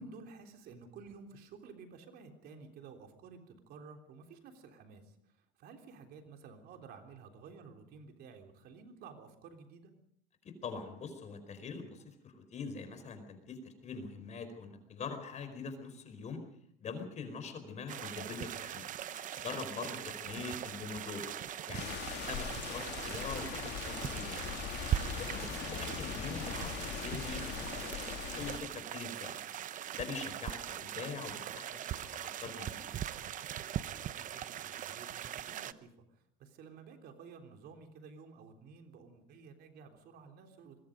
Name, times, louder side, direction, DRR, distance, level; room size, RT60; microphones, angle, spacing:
voice 1, 0.0-9.9 19.9-20.1 22.5-22.7 30.4-30.5 33.8-40.8, right 5 dB, 65° right, 5 dB, 3.6 m, -53 dB
voice 2, 10.4-16.4 16.8-18.9 19.4-21.3 21.7-24.5 25.2-27.9 28.3-29.4 29.9-32.8, left 4 dB, 40° left, 9 dB, 4.7 m, -43 dB
sound 1, 17.9-35.7, right 11 dB, 45° right, 0.8 m, -41 dB
sound 2, 19.2-21.8 22.2-27.2, left 2 dB, 10° left, 3.9 m, -56 dB
sound 3, 21.7-28.6, left 9 dB, 70° left, 2.6 m, -41 dB
24.5 x 21.5 x 5.2 m, 0.68 s
cardioid pair, 120°, 18 cm